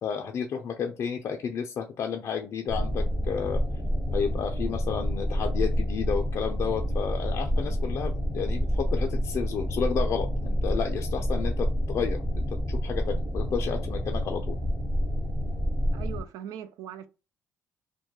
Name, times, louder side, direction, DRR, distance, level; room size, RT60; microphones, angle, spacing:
voice 1, 0.0-3.6 4.1-14.5, left 7 dB, 55° left, 0.4 m, -31 dB
sound 1, 2.7-16.2, equal, 20° right, 1.0 m, -28 dB
voice 2, 15.9-17.1, right 9 dB, 80° right, 0.3 m, -40 dB
2.2 x 2.1 x 2.8 m
cardioid pair, 85°, 6 cm